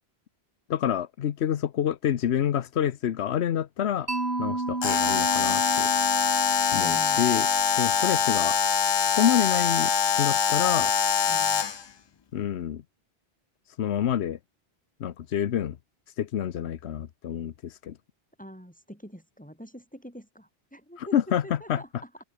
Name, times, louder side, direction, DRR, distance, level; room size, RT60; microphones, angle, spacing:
voice 1, 0.7-4.1 4.4-5.9 6.7-7.5 7.8-8.6 8.9-9.9 10.2-10.9 12.3-12.8 13.7-14.4 15.0-15.8 16.2-18.0 21.0-21.4 21.7-21.8, left 10 dB, 90° left, 1.1 m, -27 dB
Mallet percussion, 4.1-8.1, right 2 dB, 75° right, 3.6 m, -33 dB
Alarm, 4.8-11.8, left 6 dB, 40° left, 0.4 m, -24 dB
voice 2, 6.8-7.3 11.3-11.7 18.4-21.2 21.4-22.1, equal, 5° left, 7.0 m, -45 dB
open air
omnidirectional pair, 1.1 m